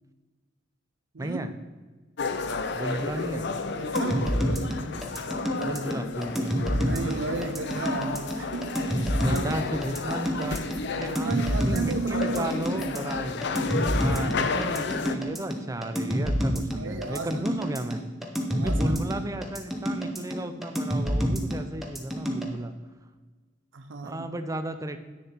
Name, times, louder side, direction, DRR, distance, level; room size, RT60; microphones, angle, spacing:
voice 1, 1.2-1.5 2.7-3.5 5.6-6.5 9.2-10.6 10.9-13.5 14.0-18.0 18.6-22.7 24.0-25.0, right 1 dB, 15° right, 9 dB, 0.5 m, -34 dB
sound 1, 2.2-15.2, left 4 dB, 60° left, 0.5 m, -32 dB
voice 2, 2.9-3.4 3.7-4.3 6.7-9.0 9.3-9.6 10.9-12.8 16.8-17.5 18.6-18.8 19.2-19.3 23.7-24.3, right 3 dB, 70° right, 7 dB, 0.6 m, -34 dB
sound 2, 4.0-22.5, equal, ahead, 1.0 m, -28 dB
9.5 x 6.7 x 4.4 m, 1.3 s
head